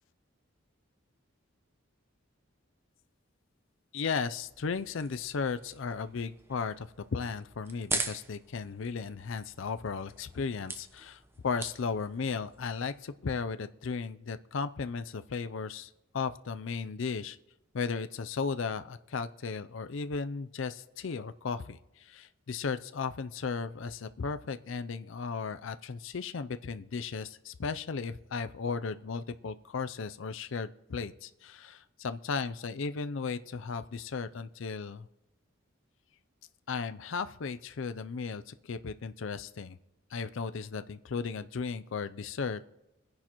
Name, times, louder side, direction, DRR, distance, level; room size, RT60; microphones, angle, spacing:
voice 1, 3.9-17.4 17.7-35.1 36.7-39.8 40.1-42.6, left 5 dB, 65° left, 11 dB, 0.5 m, -35 dB
sound 1, 4.4-13.0, right 3 dB, 10° right, 0.8 m, -42 dB
26.0 x 10.5 x 3.0 m, 0.99 s
head